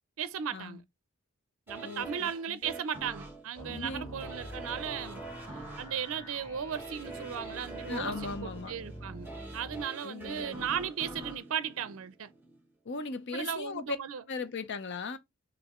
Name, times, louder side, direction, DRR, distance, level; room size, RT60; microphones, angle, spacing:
voice 1, 0.2-0.8 1.7-5.2 5.5-12.3 13.3-14.2, right 8 dB, 65° right, 0.5 m, -36 dB
sound 1, 1.7-12.6 13.1-13.2, right 2 dB, 10° right, 1.1 m, -45 dB
voice 2, 1.8-2.6 3.7-4.1 7.9-8.7 10.0-10.6 12.8-14.0 14.3-15.2, left 4 dB, 55° left, 0.6 m, -38 dB
sound 2, 3.5-9.8, right 1 dB, 20° left, 3.0 m, -46 dB
6.5 x 2.6 x 3.0 m
head